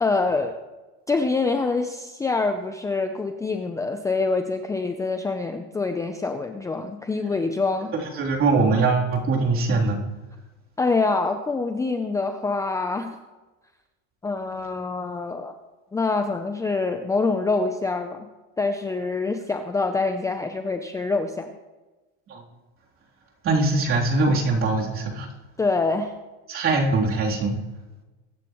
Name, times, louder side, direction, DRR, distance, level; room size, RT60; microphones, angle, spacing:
voice 1, 0.0-0.5 1.1-7.9 10.8-13.2 14.2-15.6 15.9-18.3 18.6-21.5 25.6-26.1, left 3 dB, 10° left, 6 dB, 0.6 m, -25 dB
voice 2, 7.9-10.0 22.3-22.4 23.4-25.3 26.5-27.6, right 3 dB, 35° right, -2 dB, 3.4 m, -22 dB
23.0 x 10.5 x 3.1 m, 1.2 s
supercardioid pair, 135°, 36 cm